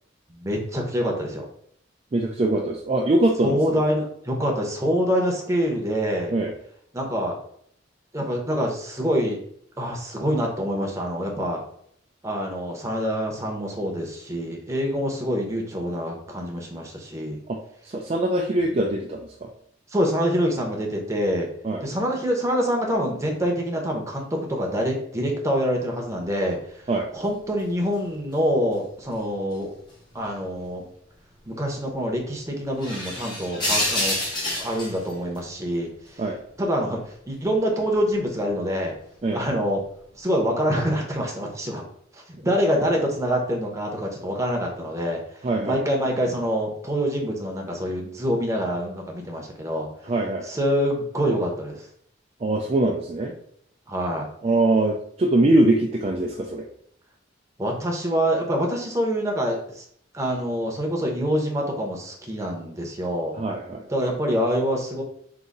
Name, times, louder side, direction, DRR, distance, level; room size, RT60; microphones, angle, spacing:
voice 1, 0.3-1.4 3.4-6.3 6.9-7.4 8.1-9.4 9.8-11.6 12.2-17.4 18.7-18.8 19.9-21.5 21.8-26.8 27.1-29.7 30.1-30.9 31.5-34.2 34.6-36.2 36.6-38.9 39.3-39.8 40.1-41.8 42.1-45.2 45.6-49.9 50.4-51.9 53.9-54.3 57.6-59.8 60.1-63.4 63.9-65.0, equal, 15° right, 0 dB, 0.8 m, -26 dB
voice 2, 2.1-3.8 6.3-6.5 17.5-19.5 21.6-21.9 26.9-27.1 36.2-36.4 39.2-39.4 45.4-45.8 50.0-50.5 52.4-53.3 54.4-56.7 63.4-63.8, right 2 dB, 35° right, 1 dB, 0.4 m, -23 dB
sound 1, 26.4-26.6 27.1-29.2 29.5-30.5 30.8-30.9 31.3-31.5 31.9-32.0 32.6-36.1 36.5-38.5 39.2-39.4 39.8-40.2, left 1 dB, 25° left, 1.1 m, -29 dB
4.0 x 2.7 x 3.8 m, 0.65 s
head